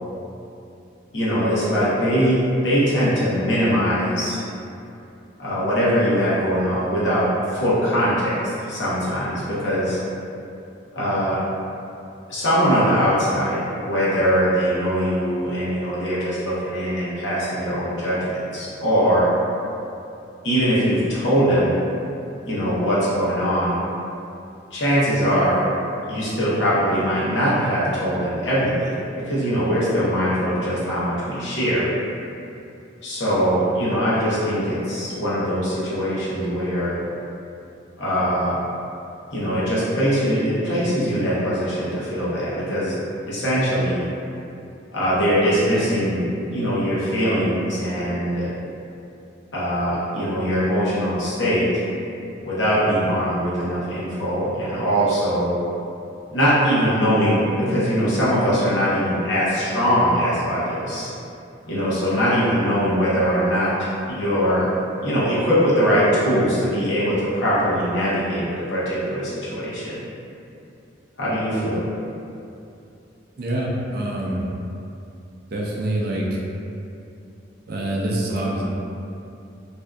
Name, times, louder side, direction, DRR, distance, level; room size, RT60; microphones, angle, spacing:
voice 1, 1.1-4.4 5.4-10.0 10.9-11.4 12.3-19.3 20.4-21.8 22.5-23.8 24.7-25.7 26.1-31.9 33.0-37.0 38.0-38.6 39.3-42.9 43.3-44.0 44.9-48.5 49.5-51.8 52.4-55.6 56.3-61.1 61.7-64.7 65.0-70.0 71.2-71.8, equal, 70° left, -9 dB, 0.8 m, -21 dB
voice 2, 73.4-74.4 75.5-76.2 77.7-78.6, right 1 dB, 50° right, -4 dB, 0.4 m, -25 dB
2.6 x 2.3 x 2.2 m, 2.7 s
head